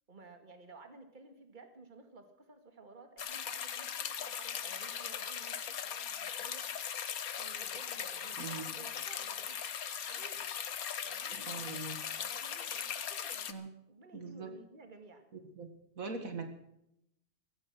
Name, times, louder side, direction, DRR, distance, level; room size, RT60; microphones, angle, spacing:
voice 1, 0.1-7.0 7.4-9.5 10.1-11.6 12.0-13.5 13.9-15.3, right 3 dB, 35° right, 7 dB, 2.3 m, -55 dB
sound 1, 3.2-13.5, left 8 dB, 85° left, 1.6 m, -39 dB
voice 2, 8.4-8.7 11.3-12.0 13.5-13.7 14.1-14.5 15.6-15.7 16.0-16.5, right 4 dB, 70° right, 7 dB, 2.3 m, -41 dB
16.0 x 14.5 x 6.1 m, 0.78 s
omnidirectional pair, 1.5 m